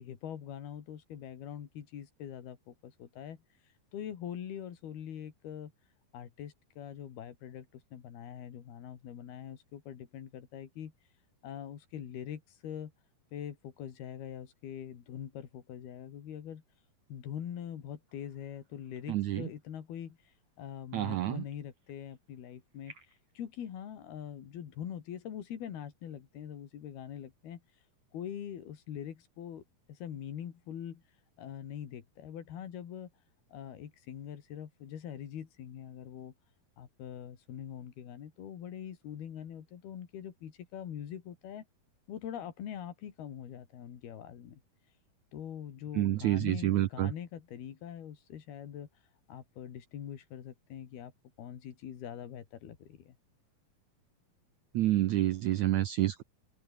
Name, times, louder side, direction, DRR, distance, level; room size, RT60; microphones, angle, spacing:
voice 1, 0.0-3.4 3.9-5.7 6.1-7.7 7.9-10.9 11.4-12.9 13.3-16.6 17.1-27.6 28.1-29.6 29.9-31.0 31.4-33.1 33.5-36.3 36.8-41.7 42.1-44.6 45.3-48.9 49.3-51.1 51.4-53.2, left 9 dB, 85° left, 4.5 m, -43 dB
sound 1, 18.1-23.4, right 4 dB, 50° right, 7.5 m, -63 dB
voice 2, 19.1-19.5 20.9-21.4 46.0-47.1 54.7-56.2, right 15 dB, 80° right, 1.7 m, -28 dB
omnidirectional pair, 4.3 m